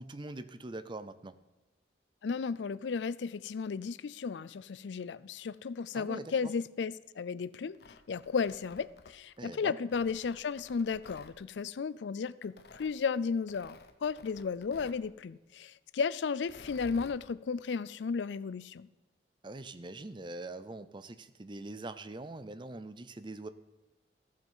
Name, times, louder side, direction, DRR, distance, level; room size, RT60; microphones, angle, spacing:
voice 1, 0.0-1.4 5.9-6.3 9.4-9.8 19.4-23.5, right 2 dB, 25° right, 12 dB, 0.6 m, -43 dB
voice 2, 2.2-7.8 8.1-18.9, left 5 dB, 85° left, 18 dB, 0.4 m, -34 dB
Tearing, 7.6-9.4 9.9-11.3 12.4-12.9 13.5-15.0 16.4-17.2, left 3 dB, 60° left, 0.9 m, -53 dB
14.0 x 7.5 x 5.6 m, 1.1 s
head